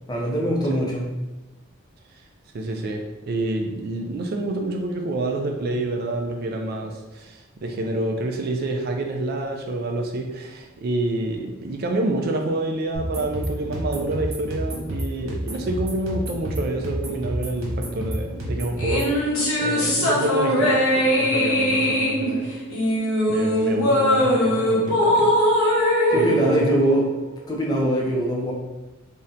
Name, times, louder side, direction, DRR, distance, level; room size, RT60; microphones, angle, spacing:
voice 1, 0.1-1.1 26.1-27.1 27.5-28.5, right 1 dB, 20° left, -2 dB, 0.4 m, -22 dB
voice 2, 2.5-19.1 19.5-22.5 23.3-25.3 26.1-26.8, right 2 dB, 45° right, 3 dB, 0.3 m, -28 dB
sound 1, 12.9-19.1, right 1 dB, 85° right, 1.1 m, -30 dB
sound 2, 18.8-27.4, equal, 80° left, 0.8 m, -21 dB
2.7 x 2.1 x 3.7 m, 1.1 s
head